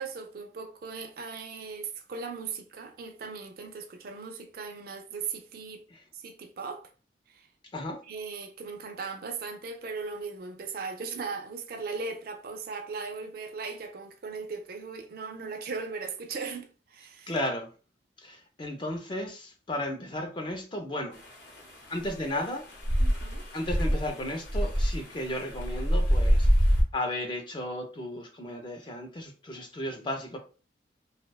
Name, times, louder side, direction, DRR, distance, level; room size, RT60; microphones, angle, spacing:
voice 1, 0.0-5.9 6.1-6.9 7.3-7.5 8.0-17.3 23.0-23.5, right 4 dB, 50° right, 0.3 m, -38 dB
voice 2, 17.3-17.7 18.2-21.2 21.9-22.6 23.5-30.4, left 1 dB, 25° left, 0.4 m, -34 dB
sound 1, 21.2-26.8, equal, 75° left, 0.7 m, -26 dB
2.6 x 2.1 x 2.2 m
head